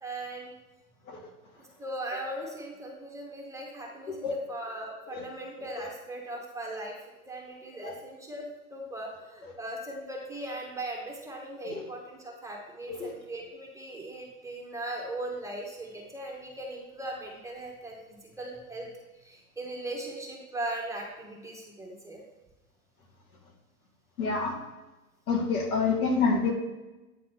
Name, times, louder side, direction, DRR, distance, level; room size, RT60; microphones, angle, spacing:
voice 1, 0.0-0.5 1.6-6.9 7.3-8.4 8.7-18.9 19.2-22.2 25.5-25.7, right 1 dB, 5° right, -1 dB, 1.3 m, -39 dB
voice 2, 24.2-24.5 25.3-26.5, left 4 dB, 70° left, 2 dB, 1.9 m, -27 dB
9.0 x 3.9 x 4.6 m, 1.1 s
hypercardioid pair, 105°, 45 cm